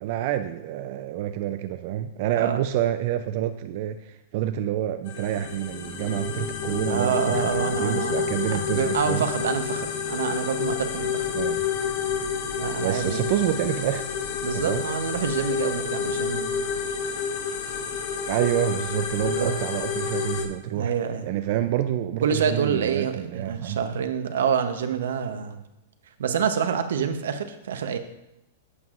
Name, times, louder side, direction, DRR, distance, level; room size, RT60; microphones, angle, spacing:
voice 1, 0.0-9.3 11.3-11.7 12.8-14.1 14.5-14.8 18.3-20.9 21.2-23.8, right 11 dB, 50° right, 9 dB, 0.4 m, -28 dB
sound 1, 5.1-20.5, left 7 dB, 60° left, 1.0 m, -29 dB
voice 2, 6.9-8.4 8.7-11.3 12.6-13.3 14.4-16.7 19.3-19.6 20.8-21.3 22.2-25.6 26.2-28.0, right 7 dB, 85° right, 8 dB, 0.8 m, -27 dB
11.0 x 7.3 x 2.5 m, 0.90 s
hypercardioid pair, 140°, 0 cm